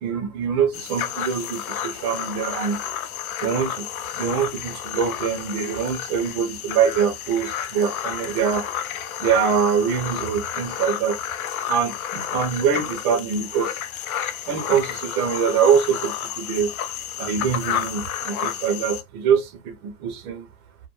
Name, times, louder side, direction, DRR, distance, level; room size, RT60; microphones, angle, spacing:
voice 1, 0.0-2.8 3.4-3.9 4.1-8.7 9.2-11.2 11.7-13.8 14.5-16.7 17.2-20.5, right 7 dB, 25° right, 0.5 m, -24 dB
sound 1, 0.7-19.0, left 10 dB, 75° left, 0.6 m, -31 dB
2.3 x 2.3 x 2.9 m
hypercardioid pair, 140°, 42 cm